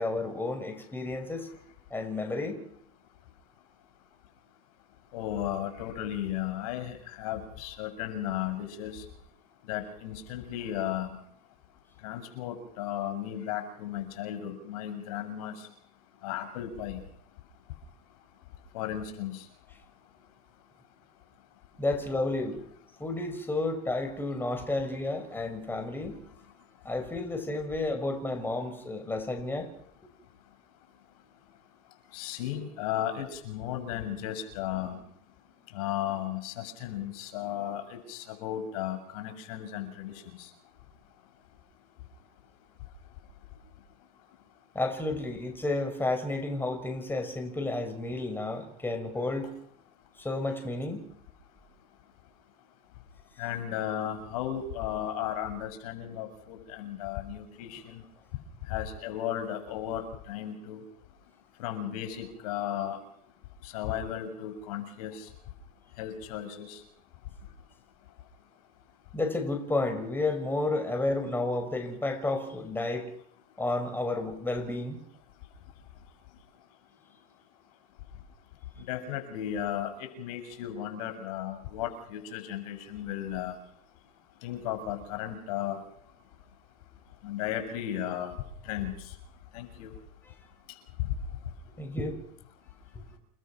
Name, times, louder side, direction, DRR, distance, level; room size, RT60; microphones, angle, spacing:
voice 1, 0.0-1.5 1.9-2.6 21.8-22.6 23.0-26.1 26.8-29.7 44.7-49.5 50.2-51.0 69.1-73.1 73.6-75.0 91.8-92.2, left 2 dB, 10° left, 5.9 m, -31 dB
voice 2, 5.1-9.0 9.7-11.2 12.0-15.5 16.2-17.0 18.7-19.4 32.1-35.0 35.7-40.4 53.4-58.0 58.7-60.8 61.6-63.0 63.7-65.2 66.0-66.8 78.9-83.5 84.4-85.8 87.2-88.4 88.7-88.9 89.5-89.9, left 11 dB, 75° left, 6.7 m, -35 dB
30.0 x 20.0 x 6.1 m
supercardioid pair, 105°, 19 cm